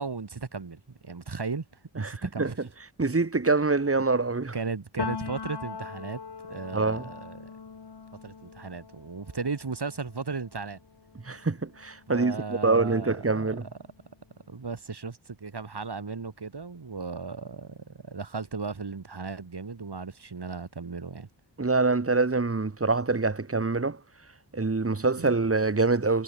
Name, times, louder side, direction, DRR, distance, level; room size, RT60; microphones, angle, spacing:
voice 1, 0.0-1.7 1.9-2.5 4.5-6.2 6.5-7.5 8.2-10.8 12.1-13.3 14.5-21.3 25.2-25.3, right 4 dB, 60° right, 7.8 m, -36 dB
voice 2, 2.0-2.5 3.0-4.5 6.7-7.1 11.2-13.7 21.6-24.0 24.5-26.2, right 3 dB, 30° right, 2.2 m, -25 dB
Piano, 5.0-12.6 12.9-14.5, left 5 dB, 60° left, 2.9 m, -41 dB
wide cardioid pair, 100°, 45 cm